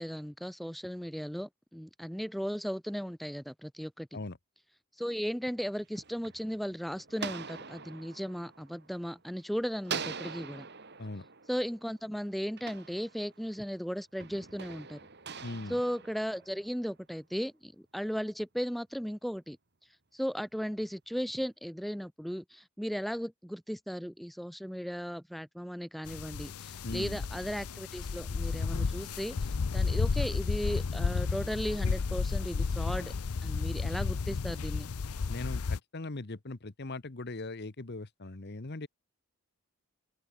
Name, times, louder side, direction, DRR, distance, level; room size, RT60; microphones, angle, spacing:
voice 1, 0.0-4.1 5.0-10.7 11.5-15.0 15.7-19.6 20.1-33.1 33.4-34.9, equal, ahead, 0.6 m, -36 dB
sound 1, 5.7-9.4 9.8-13.6 14.2-16.9, right 6 dB, 50° right, 2.6 m, -44 dB
voice 2, 15.4-15.8 26.8-27.2 35.3-38.9, left 2 dB, 50° left, 1.1 m, -40 dB
sound 2, 26.1-35.8, left 4 dB, 85° left, 0.6 m, -32 dB
open air
head